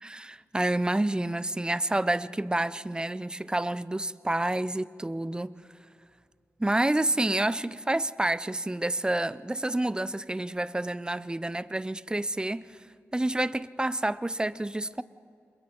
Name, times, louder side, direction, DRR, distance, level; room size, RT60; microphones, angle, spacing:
voice 1, 0.0-5.6 6.6-12.8 13.1-15.0, right 1 dB, 15° right, 0.6 m, -29 dB
28.0 x 22.0 x 4.5 m
cardioid pair, 45°, 5 cm